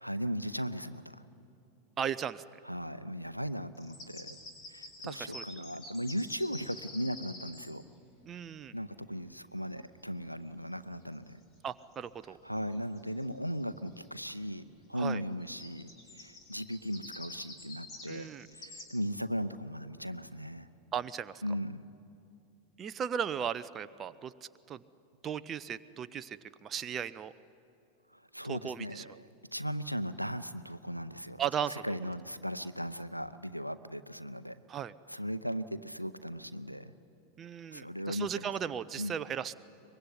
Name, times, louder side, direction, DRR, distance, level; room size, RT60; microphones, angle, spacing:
voice 1, 0.0-1.2 2.6-4.4 4.7-7.8 8.7-11.4 12.4-20.7 21.4-21.9 28.1-31.4 31.7-34.6 35.1-36.9 37.7-38.4 39.0-39.1, equal, 90° right, 13 dB, 0.7 m, -37 dB
voice 2, 2.0-2.4 5.0-5.4 8.2-8.7 11.6-12.4 15.0-15.2 18.1-18.5 20.9-21.3 22.8-24.3 24.7-24.8 25.2-27.3 28.4-29.0 31.4-31.8 34.7-34.9 37.4-39.5, right 8 dB, 25° right, 14 dB, 0.6 m, -36 dB
sound 1, 3.8-7.7 11.1-11.3 11.8-12.3 12.5-12.7 13.0-14.1 15.4-18.8, left 2 dB, 30° left, 4.3 m, -48 dB
23.5 x 21.0 x 9.7 m, 2.7 s
figure-of-eight pair, 90°, 0 cm